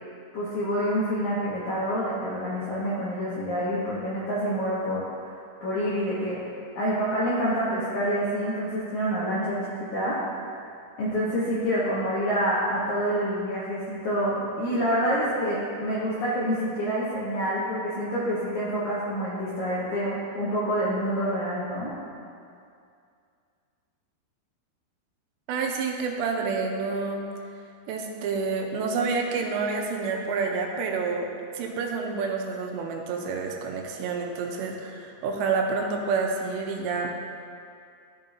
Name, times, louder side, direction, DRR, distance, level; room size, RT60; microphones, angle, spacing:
voice 1, 0.3-5.3 5.6-6.4 6.8-10.2 11.0-21.9, equal, 75° left, -9 dB, 1.7 m, -27 dB
voice 2, 25.5-27.3 27.9-31.3 31.5-37.1, right 4 dB, 85° right, 1 dB, 2.9 m, -28 dB
13.5 x 5.4 x 2.7 m, 2.4 s
omnidirectional pair, 5.0 m